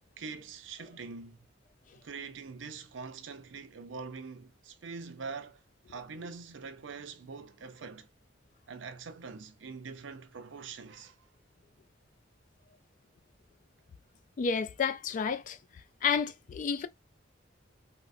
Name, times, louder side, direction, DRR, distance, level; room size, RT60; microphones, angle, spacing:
voice 1, 0.2-1.4 2.0-5.6 5.9-8.1 8.7-11.1, right 5 dB, 80° right, 0.5 m, -44 dB
voice 2, 14.4-15.6 16.0-16.9, left 6 dB, 45° left, 0.3 m, -30 dB
3.7 x 2.1 x 2.4 m
head